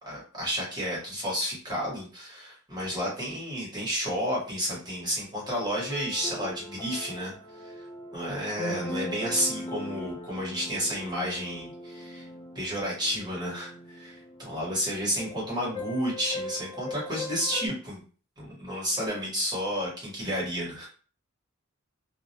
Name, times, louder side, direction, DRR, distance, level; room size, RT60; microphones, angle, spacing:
voice 1, 0.0-7.3 7.6-7.7 8.1-12.3 12.5-18.0 18.4-20.9, equal, 20° right, -5 dB, 1.1 m, -31 dB
sound 1, 5.5-17.7, left 1 dB, 20° left, 0.3 m, -39 dB
2.3 x 2.1 x 2.7 m, 0.39 s
head